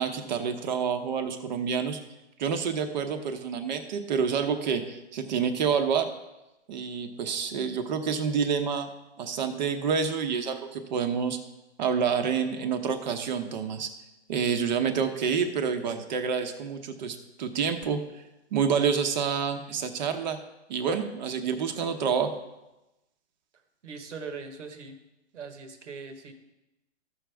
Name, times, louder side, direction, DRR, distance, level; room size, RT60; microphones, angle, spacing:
voice 1, 0.0-2.0 2.4-6.1 6.7-8.9 9.2-11.4 11.8-13.9 14.3-18.0 18.5-20.4 20.7-22.3, right 6 dB, 40° right, 7 dB, 0.9 m, -28 dB
voice 2, 23.8-25.0 25.3-26.3, right 4 dB, 85° right, 7 dB, 1.5 m, -40 dB
14.0 x 6.3 x 3.4 m, 0.98 s
hypercardioid pair, 160°, 35 cm